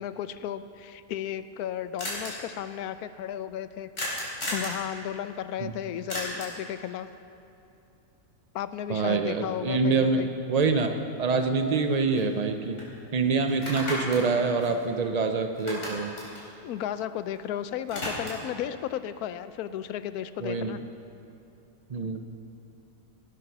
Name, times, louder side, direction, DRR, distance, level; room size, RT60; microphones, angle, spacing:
voice 1, 0.0-3.9 4.5-7.1 8.5-10.3 16.6-20.8, left 10 dB, 85° left, 13 dB, 1.1 m, -34 dB
sound 1, 2.0-2.3 4.0-4.8 6.1-6.6 10.8-10.9 11.3-12.5 12.8-12.9 13.5-15.3 15.5-17.4 17.7-18.5, left 1 dB, 50° left, 4.1 m, -35 dB
voice 2, 8.9-12.8 13.1-16.1 20.4-20.8 21.9-22.2, right 4 dB, 65° right, 6 dB, 0.4 m, -26 dB
18.5 x 8.4 x 6.0 m, 2.8 s
omnidirectional pair, 1.6 m